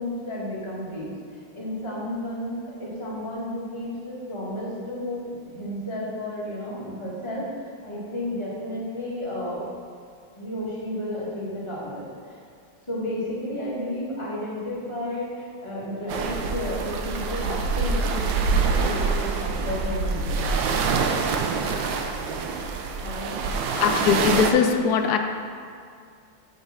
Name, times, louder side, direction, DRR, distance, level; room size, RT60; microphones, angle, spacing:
voice 1, 0.0-9.6 10.4-12.4 12.9-20.5 23.0-23.4, left 1 dB, 15° left, -9 dB, 2.1 m, -32 dB
sound 1, 16.1-24.5, right 4 dB, 75° right, 1.3 m, -25 dB
voice 2, 23.7-25.2, left 6 dB, 70° left, 5 dB, 0.9 m, -20 dB
6.4 x 5.4 x 6.2 m, 2.2 s
omnidirectional pair, 2.2 m